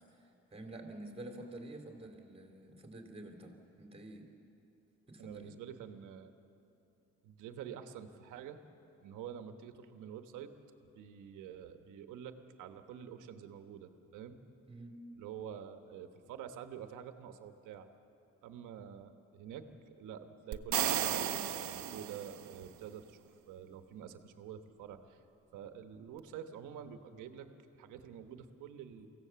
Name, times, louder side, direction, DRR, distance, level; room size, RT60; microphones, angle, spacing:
voice 1, 0.5-4.3 5.1-5.5 14.7-15.0, right 1 dB, 20° right, 3 dB, 3.0 m, -48 dB
voice 2, 5.2-6.3 7.2-8.6 9.0-10.5 10.9-14.4 15.2-17.9 18.4-23.2 23.5-25.2 25.5-27.5 27.8-29.1, right 8 dB, 90° right, 8 dB, 1.2 m, -47 dB
sound 1, 20.5-22.6, right 11 dB, 70° right, 0.9 m, -34 dB
23.5 x 16.0 x 7.0 m, 2.7 s
cardioid pair, 90°, 30 cm